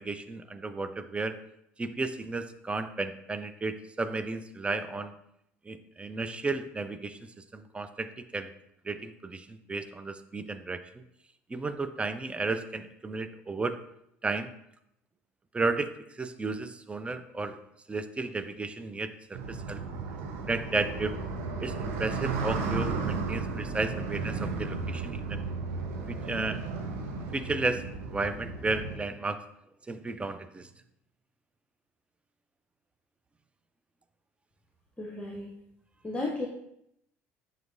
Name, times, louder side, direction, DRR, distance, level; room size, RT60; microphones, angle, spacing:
voice 1, 0.0-1.4 1.8-5.1 5.6-7.2 7.5-8.5 8.8-10.8 11.5-13.7 14.2-14.5 15.5-17.6 17.9-19.8 20.5-21.2 21.6-25.4 26.1-26.6 27.3-29.4 29.9-30.7, right 3 dB, 15° right, 10 dB, 0.5 m, -33 dB
sound 1, 19.3-29.0, right 4 dB, 65° right, 0.9 m, -34 dB
voice 2, 35.0-35.5 36.0-36.5, left 2 dB, 15° left, -1 dB, 0.8 m, -34 dB
7.7 x 5.3 x 2.5 m, 0.77 s
figure-of-eight pair, 60°, 7 cm